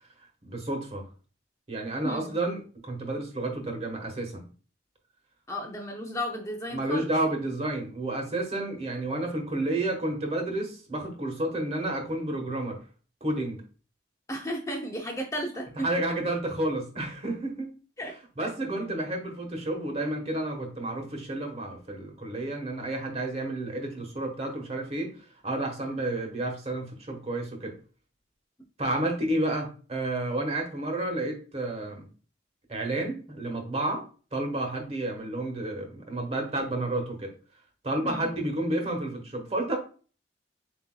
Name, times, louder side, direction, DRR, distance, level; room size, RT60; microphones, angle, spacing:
voice 1, 0.4-1.0 1.7-4.4 6.7-12.8 13.2-13.6 15.8-17.7 18.4-25.1 25.4-27.7 28.8-32.1 32.7-34.0 34.3-37.3 37.8-39.8, right 1 dB, 35° right, 2 dB, 1.2 m, -31 dB
voice 2, 2.0-2.4 5.5-7.1 14.3-15.9 18.0-18.5 38.0-38.3, equal, 15° left, 2 dB, 0.5 m, -34 dB
7.7 x 2.8 x 2.2 m, 0.38 s
head